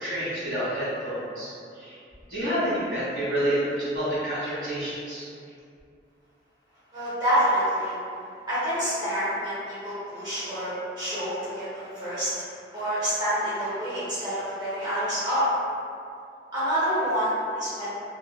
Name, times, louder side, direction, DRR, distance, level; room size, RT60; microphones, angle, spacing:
voice 1, 0.0-2.0 2.3-5.3, equal, 75° right, -11 dB, 1.3 m, -29 dB
voice 2, 6.9-7.9 8.5-12.3 12.7-15.5 16.5-17.9, equal, 25° right, -13 dB, 0.8 m, -27 dB
2.7 x 2.3 x 2.2 m, 2.4 s
head